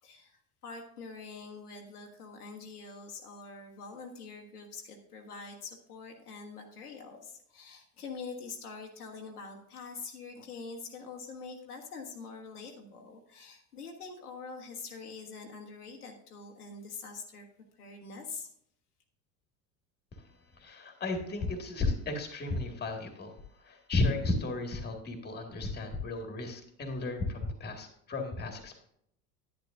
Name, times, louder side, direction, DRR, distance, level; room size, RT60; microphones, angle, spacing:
voice 1, 0.0-17.5 17.7-18.5, left 4 dB, 75° left, 2 dB, 1.3 m, -45 dB
voice 2, 20.2-28.7, left 2 dB, 20° left, 4 dB, 1.9 m, -34 dB
10.5 x 10.5 x 2.6 m, 0.71 s
figure-of-eight pair, 70°, 46 cm